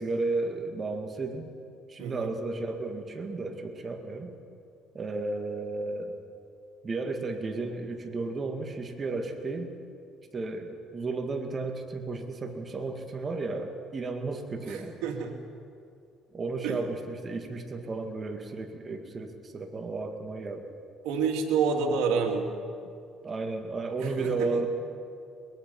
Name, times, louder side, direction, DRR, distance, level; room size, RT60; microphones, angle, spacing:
voice 1, 0.0-1.5 1.9-4.3 4.9-6.1 6.8-9.7 10.3-15.0 16.3-20.7 23.2-24.7, right 3 dB, 30° right, 4 dB, 2.3 m, -33 dB
voice 2, 2.0-2.3 14.7-15.3 16.6-16.8 21.0-22.5 24.0-24.5, right 5 dB, 90° right, 2 dB, 2.7 m, -28 dB
22.0 x 22.0 x 5.6 m, 2.4 s
cardioid pair, 105°, 0 cm